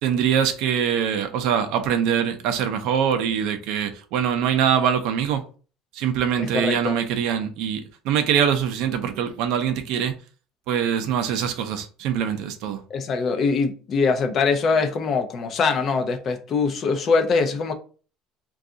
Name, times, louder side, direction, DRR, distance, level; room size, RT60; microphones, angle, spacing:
voice 1, 0.0-5.4 5.9-10.1 10.7-12.8, right 8 dB, 60° right, 0.5 m, -23 dB
voice 2, 6.6-7.0 12.9-17.7, left 4 dB, 35° left, 0.4 m, -22 dB
2.6 x 2.3 x 3.7 m
cardioid pair, 165°, 0 cm